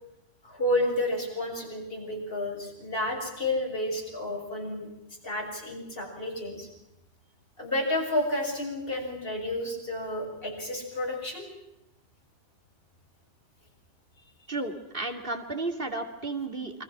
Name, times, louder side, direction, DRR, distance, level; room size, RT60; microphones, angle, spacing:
voice 1, 0.4-4.9 5.2-6.7 7.6-11.5, left 1 dB, 55° left, 1 dB, 7.1 m, -31 dB
voice 2, 14.5-16.8, right 3 dB, 55° right, 4 dB, 2.9 m, -33 dB
29.0 x 24.5 x 6.2 m, 0.85 s
omnidirectional pair, 1.1 m